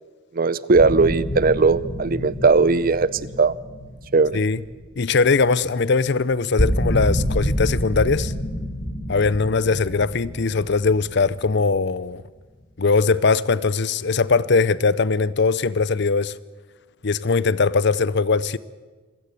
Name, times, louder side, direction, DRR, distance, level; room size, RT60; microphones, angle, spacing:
voice 1, 0.3-3.5 4.1-4.4, right 4 dB, 45° right, 0.6 m, -18 dB
sound 1, 0.7-5.6 5.9-6.1 6.3-11.9, equal, 75° left, 4.7 m, -28 dB
voice 2, 5.0-8.3 9.1-12.2 12.8-16.3 17.0-18.6, left 4 dB, 60° left, 0.7 m, -20 dB
27.0 x 16.0 x 8.5 m
head